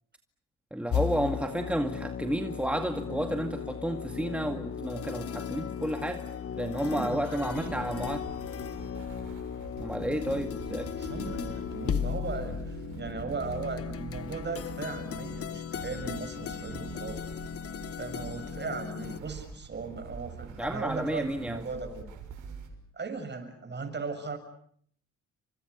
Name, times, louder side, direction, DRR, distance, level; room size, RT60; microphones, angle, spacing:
voice 1, 0.7-6.2 6.6-8.3 9.8-10.9 20.6-21.6, right 1 dB, 5° right, 5 dB, 2.1 m, -31 dB
sound 1, 0.9-19.2, left 8 dB, 50° left, 1.1 m, -36 dB
voice 2, 6.8-7.8 10.9-17.2 18.0-22.1 22.9-24.4, right 4 dB, 35° right, 9 dB, 7.3 m, -37 dB
sound 2, 7.4-22.7, right 6 dB, 80° right, 6.3 m, -45 dB
30.0 x 25.5 x 6.9 m, 0.64 s
cardioid pair, 90°, 30 cm